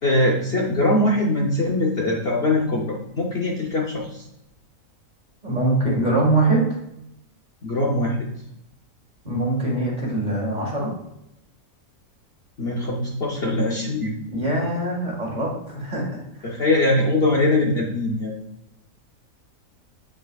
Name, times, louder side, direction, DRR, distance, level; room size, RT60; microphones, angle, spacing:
voice 1, 0.0-4.3 7.6-8.2 12.6-14.1 16.4-18.3, left 2 dB, 50° left, -2 dB, 0.9 m, -22 dB
voice 2, 5.4-6.6 9.2-10.9 14.3-16.6, right 2 dB, 30° right, -2 dB, 1.9 m, -23 dB
8.7 x 5.1 x 2.3 m, 0.81 s
omnidirectional pair, 1.6 m